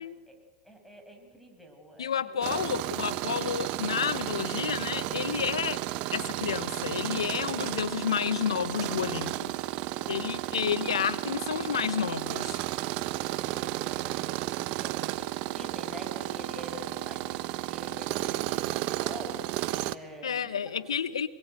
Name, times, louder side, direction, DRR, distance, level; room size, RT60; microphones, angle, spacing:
voice 1, 0.0-2.7 9.7-10.5 13.2-20.9, equal, ahead, 0 dB, 6.5 m, -48 dB
voice 2, 2.0-5.8 6.1-9.5 10.1-12.6 20.2-21.3, left 8 dB, 85° left, 15 dB, 1.0 m, -30 dB
Tools, 2.4-20.0, right 17 dB, 45° right, 1.0 m, -33 dB
26.5 x 21.5 x 7.9 m, 1.5 s
hypercardioid pair, 105°, 3 cm